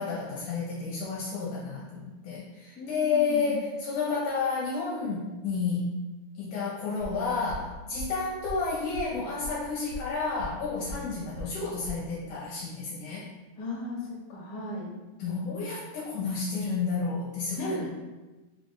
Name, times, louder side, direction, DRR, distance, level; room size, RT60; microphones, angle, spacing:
voice 1, 0.0-5.9 6.4-13.2 15.2-17.9, left 4 dB, 75° left, -5 dB, 2.1 m, -31 dB
voice 2, 2.8-3.6 13.6-14.9 15.2-15.6 17.6-17.9, left 2 dB, 55° left, -4 dB, 1.8 m, -37 dB
sound 1, 7.0-12.1, left 1 dB, 70° right, 1.1 m, -41 dB
5.1 x 2.5 x 3.7 m, 1.2 s
omnidirectional pair, 3.8 m